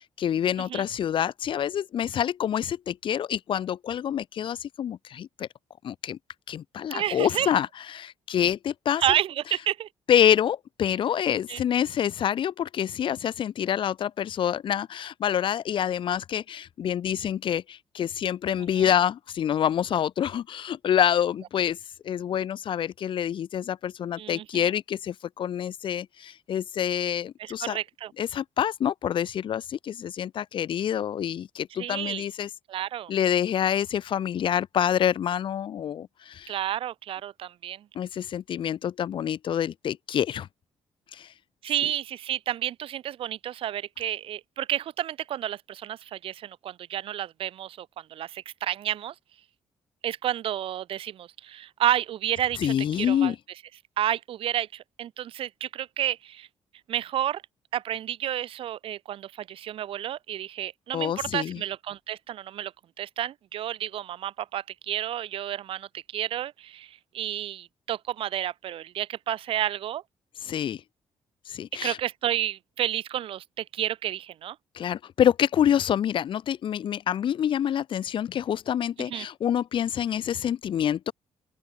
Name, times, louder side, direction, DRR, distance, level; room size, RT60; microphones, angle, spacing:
voice 1, 0.2-5.5 5.8-6.2 6.5-9.0 10.1-21.8 22.0-27.8 28.2-32.5 33.1-36.6 37.9-40.5 41.1-41.3 52.6-53.4 60.9-61.6 70.4-70.8 71.5-72.0 74.7-81.1, left 9 dB, 55° left, 3.2 m, -27 dB
voice 2, 6.9-7.5 9.0-9.9 11.5-11.6 18.8-18.9 24.2-24.7 27.4-28.1 31.8-32.2 32.7-33.1 36.5-37.8 41.6-49.1 50.0-53.3 54.0-56.5 56.9-57.4 57.7-62.7 63.0-70.0 71.8-74.5 79.1-79.3, right 11 dB, 65° right, 1.4 m, -31 dB
open air
cardioid pair, 135°, 10 cm